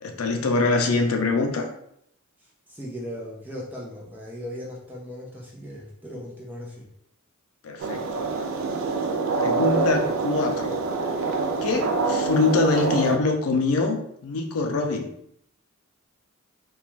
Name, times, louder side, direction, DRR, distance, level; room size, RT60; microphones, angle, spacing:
voice 1, 0.0-1.7 7.6-8.3 9.3-10.8 11.6-15.1, left 3 dB, 80° left, 4 dB, 0.4 m, -24 dB
voice 2, 2.4-6.9, equal, 10° right, -5 dB, 0.5 m, -38 dB
sound 1, 7.8-13.2, right 3 dB, 65° right, 0.3 m, -26 dB
2.4 x 2.2 x 3.0 m, 0.72 s
head